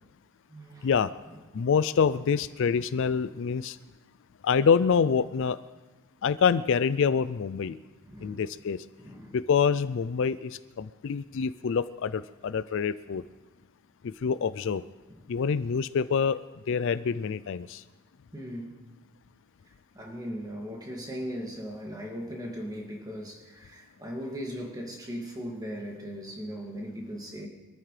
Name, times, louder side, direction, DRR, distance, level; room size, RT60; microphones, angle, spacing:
voice 1, 0.5-0.9 1.3-1.4 8.0-8.4 9.0-9.4 13.1-13.2 18.3-18.7 19.9-27.5, equal, 15° right, 0 dB, 2.3 m, -38 dB
voice 2, 1.5-3.8 4.4-5.6 6.2-7.8 8.2-8.8 9.3-13.2 14.2-14.8 15.3-16.4 16.7-17.8, left 6 dB, 60° left, 15 dB, 0.4 m, -26 dB
24.0 x 13.5 x 3.3 m, 1.2 s
head